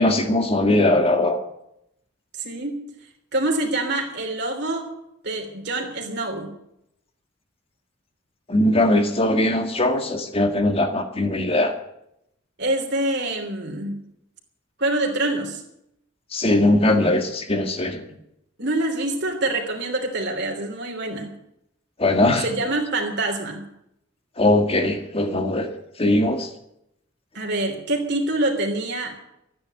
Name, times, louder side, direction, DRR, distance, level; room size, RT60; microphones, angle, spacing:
voice 1, 0.0-1.4 8.5-11.7 16.3-18.0 22.0-22.4 24.4-25.7 26.0-26.5, left 1 dB, 30° left, 6 dB, 1.8 m, -20 dB
voice 2, 2.4-2.8 3.3-4.9 5.2-6.5 12.6-13.9 14.8-15.6 18.6-21.3 22.4-23.6 27.3-29.1, right 2 dB, 60° right, 1 dB, 3.2 m, -25 dB
13.5 x 10.0 x 9.2 m, 0.78 s
head